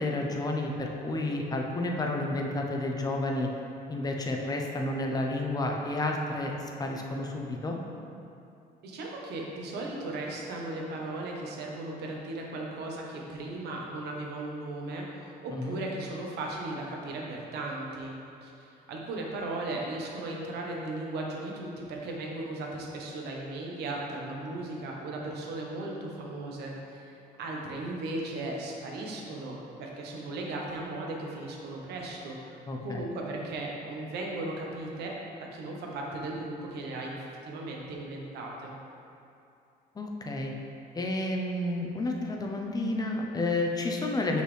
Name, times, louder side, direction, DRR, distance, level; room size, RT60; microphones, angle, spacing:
voice 1, 0.0-3.5 3.9-7.8 15.5-15.8 32.7-33.0 39.9-40.5 40.9-44.4, left 2 dB, 20° left, 1 dB, 0.7 m, -31 dB
voice 2, 8.8-35.1 35.4-37.2 37.5-38.7, right 2 dB, 75° right, -1 dB, 1.0 m, -37 dB
5.9 x 5.4 x 3.3 m, 2.6 s
cardioid pair, 110°, 17 cm